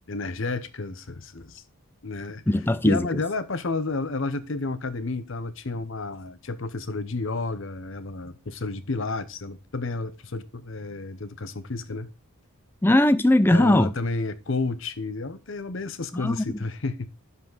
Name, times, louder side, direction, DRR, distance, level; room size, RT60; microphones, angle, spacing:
voice 1, 0.1-1.6 2.0-2.4 2.8-12.1 13.5-17.1, left 3 dB, 60° left, 0.8 m, -31 dB
voice 2, 2.5-3.1 12.8-13.9 16.1-16.4, left 1 dB, 10° left, 0.4 m, -19 dB
10.5 x 5.5 x 3.9 m
head